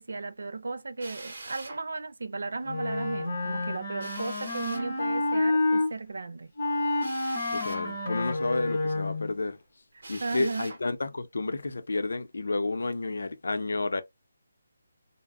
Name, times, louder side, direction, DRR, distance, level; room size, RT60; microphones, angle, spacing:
voice 1, 0.0-6.5 10.2-10.7, right 3 dB, 60° right, 0.5 m, -35 dB
Drill, 1.0-1.8 4.0-4.9 7.0-7.9 10.0-10.8, right 2 dB, 45° right, 1.1 m, -43 dB
Wind instrument woodwind instrument, 2.7-5.9 6.6-9.3, left 2 dB, 25° left, 0.7 m, -29 dB
voice 2, 7.5-9.6 10.1-14.0, left 3 dB, 70° left, 0.6 m, -31 dB
3.5 x 2.0 x 2.4 m
hypercardioid pair, 180°, 0 cm